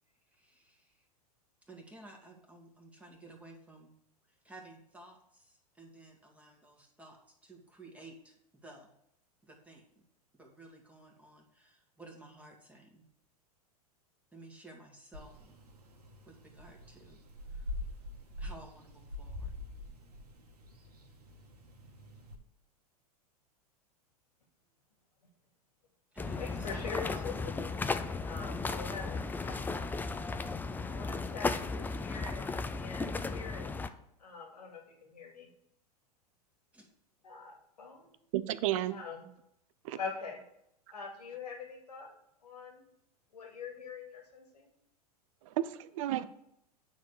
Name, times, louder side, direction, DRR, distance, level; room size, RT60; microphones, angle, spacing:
voice 1, 0.3-1.1 1.6-3.9 4.3-8.9 9.4-9.9 10.3-13.1 14.3-15.6 16.2-17.2 17.5-17.8 18.4-19.5 26.1-27.4 36.7-36.9, right 2 dB, 5° right, -1 dB, 2.2 m, -54 dB
sound 1, 15.1-22.4, left 1 dB, 80° right, 1.6 m, -45 dB
sound 2, 26.2-33.9, left 3 dB, 10° left, 0.5 m, -35 dB
voice 2, 26.4-27.3 27.6-29.5 30.9-33.8 34.2-35.5 37.2-38.1 38.9-39.3 39.9-40.4 40.9-42.1 42.4-42.8 43.3-44.7, left 5 dB, 80° left, 1 dB, 2.7 m, -44 dB
voice 3, 38.3-39.0 39.8-40.0 45.5-46.3, right 13 dB, 55° right, 15 dB, 0.7 m, -32 dB
9.4 x 4.1 x 6.5 m, 0.76 s
hypercardioid pair, 100°, 20 cm